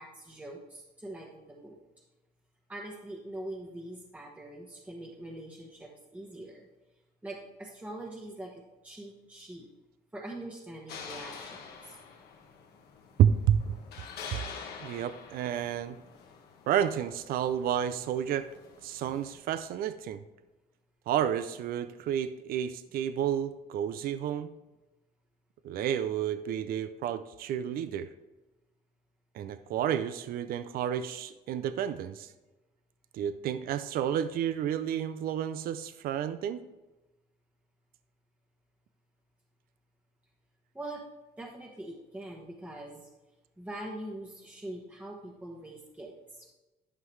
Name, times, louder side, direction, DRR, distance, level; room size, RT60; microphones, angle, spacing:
voice 1, 0.0-1.8 2.7-6.7 7.2-9.7 10.1-12.0 40.7-41.0 41.4-43.1 43.6-46.5, right 1 dB, 10° right, -2 dB, 1.1 m, -43 dB
sound 1, 10.9-19.3, left 6 dB, 70° left, 1.4 m, -47 dB
voice 2, 13.2-13.8 14.8-16.0 16.7-18.5 18.8-20.2 21.1-24.5 25.6-28.1 29.3-32.3 33.1-36.6, right 9 dB, 60° right, 12 dB, 0.5 m, -30 dB
11.0 x 5.6 x 3.2 m, 1.1 s
cardioid pair, 110°, 17 cm